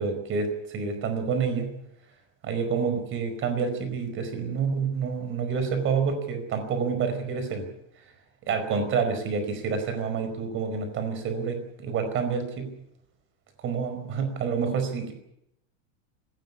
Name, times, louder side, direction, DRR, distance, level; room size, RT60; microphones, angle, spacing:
voice 1, 0.0-1.7 2.4-7.7 8.5-12.7 13.6-15.1, right 5 dB, 30° right, 9 dB, 4.9 m, -28 dB
19.0 x 17.0 x 9.8 m, 0.79 s
supercardioid pair, 160°, 39 cm